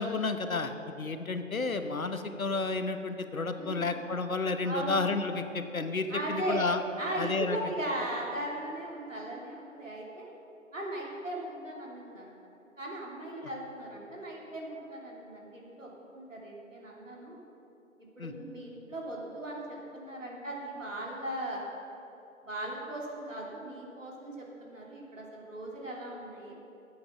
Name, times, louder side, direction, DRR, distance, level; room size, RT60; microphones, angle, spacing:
voice 1, 0.0-6.8 7.2-7.6 18.2-18.3, left 3 dB, 80° left, 8 dB, 1.0 m, -31 dB
voice 2, 3.6-3.9 4.6-5.0 6.1-6.6 7.0-10.3 10.7-12.4 12.8-17.4 18.0-21.6 22.4-26.5, right 1 dB, 65° right, -3 dB, 2.9 m, -38 dB
11.0 x 8.7 x 6.0 m, 2.9 s
figure-of-eight pair, 160°, 41 cm